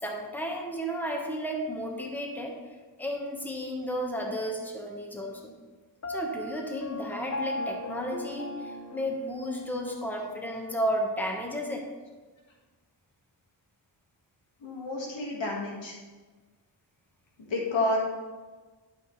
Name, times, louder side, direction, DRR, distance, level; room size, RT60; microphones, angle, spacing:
voice 1, 0.0-2.6 3.0-5.5 6.1-11.9, equal, 5° left, 0 dB, 1.3 m, -33 dB
Piano, 6.0-9.9, left 1 dB, 35° left, 0.8 m, -37 dB
voice 2, 14.6-16.0 17.4-18.0, left 2 dB, 75° left, -2 dB, 1.9 m, -30 dB
11.5 x 5.8 x 3.2 m, 1.3 s
cardioid pair, 70°, 46 cm